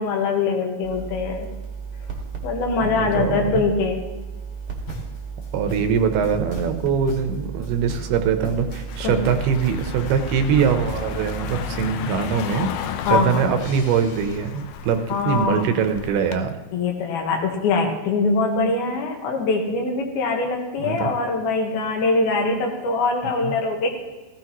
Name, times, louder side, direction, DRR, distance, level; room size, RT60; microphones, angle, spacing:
voice 1, 0.0-1.5 2.4-4.0 9.0-9.2 13.0-13.5 15.1-15.8 16.7-23.9, left 4 dB, 75° left, 2 dB, 3.3 m, -23 dB
sound 1, 0.8-11.9, right 5 dB, 45° right, 2.0 m, -34 dB
voice 2, 2.8-3.6 5.5-16.5 20.8-21.1 23.2-23.5, right 7 dB, 80° right, 7 dB, 2.9 m, -23 dB
sound 2, 4.9-14.4, left 1 dB, 50° left, 2.5 m, -39 dB
Car passing by, 8.9-16.4, left 9 dB, 90° left, 1.8 m, -34 dB
16.0 x 15.5 x 3.0 m, 1.2 s
omnidirectional pair, 4.6 m